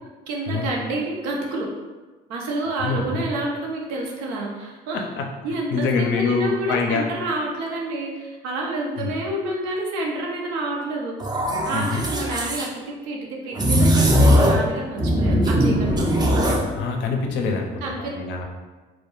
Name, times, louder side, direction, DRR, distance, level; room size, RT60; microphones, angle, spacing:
voice 1, 0.3-1.7 2.3-5.1 5.4-11.1 11.6-16.1 17.8-18.1, right 2 dB, 90° right, -1 dB, 0.6 m, -28 dB
voice 2, 2.8-3.3 4.9-5.2 5.7-7.1 9.0-9.1 11.7-12.0 16.7-18.4, left 4 dB, 65° left, 3 dB, 0.5 m, -25 dB
sound 1, 11.2-12.7 13.5-14.7 15.0-16.7, equal, 20° right, 0.4 m, -19 dB
2.2 x 2.1 x 3.0 m, 1.3 s
supercardioid pair, 80°, 20 cm